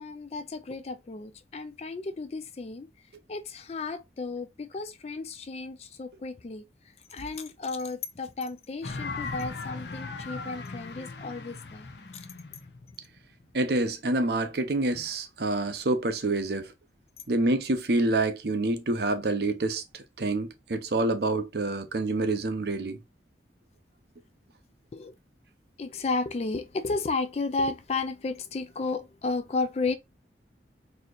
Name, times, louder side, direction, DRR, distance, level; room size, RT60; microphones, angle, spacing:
voice 1, 0.0-2.9 3.3-6.6 7.1-11.9 24.9-25.1 25.8-30.0, left 3 dB, 35° left, 0.4 m, -33 dB
sound 1, 8.8-13.7, left 3 dB, 70° left, 0.7 m, -38 dB
voice 2, 13.5-16.7 17.3-23.0, right 2 dB, 65° right, 0.7 m, -27 dB
4.2 x 2.7 x 2.4 m
head